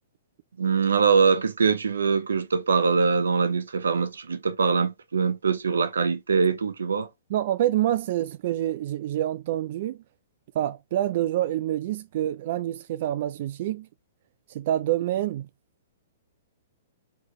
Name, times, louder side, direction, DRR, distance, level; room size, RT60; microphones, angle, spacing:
voice 1, 0.6-7.1, right 5 dB, 85° right, 0.8 m, -23 dB
voice 2, 7.3-10.0 10.5-13.9 14.5-15.5, right 12 dB, 55° right, 0.3 m, -27 dB
4.6 x 3.1 x 3.0 m
hypercardioid pair, 130°, 0 cm